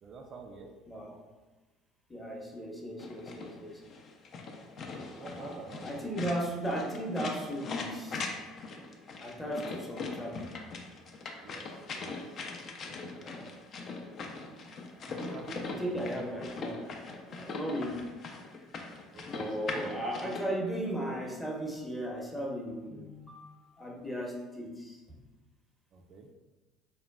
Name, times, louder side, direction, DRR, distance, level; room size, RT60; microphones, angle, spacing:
voice 1, 0.0-0.7 5.1-6.1 11.4-12.4 15.0-16.2 19.1-20.0 25.9-26.3, right 4 dB, 45° right, 2 dB, 0.3 m, -47 dB
voice 2, 0.9-1.2 2.1-3.8 5.2-8.3 9.2-10.5 12.8-13.5 14.9-15.1 15.8-16.9 17.3-18.1 19.3-25.0, right 1 dB, 15° left, -1 dB, 0.7 m, -36 dB
sound 1, 3.0-20.4, left 3 dB, 45° left, 0.4 m, -41 dB
3.6 x 2.2 x 2.2 m, 1.2 s
hypercardioid pair, 65°, 0 cm